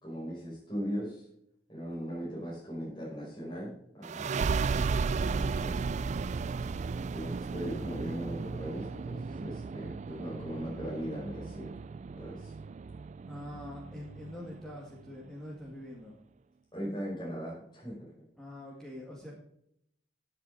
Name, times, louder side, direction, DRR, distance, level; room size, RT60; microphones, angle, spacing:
voice 1, 0.0-1.2 1.7-4.3 5.3-5.8 7.1-11.7 12.2-12.5 16.7-18.0, equal, 25° left, -6 dB, 5.5 m, -39 dB
sound 1, 4.0-15.3, right 4 dB, 40° right, 0.3 m, -35 dB
voice 2, 13.3-16.2 18.4-19.3, left 1 dB, 5° left, -2 dB, 1.9 m, -44 dB
14.0 x 7.8 x 4.1 m, 0.74 s
head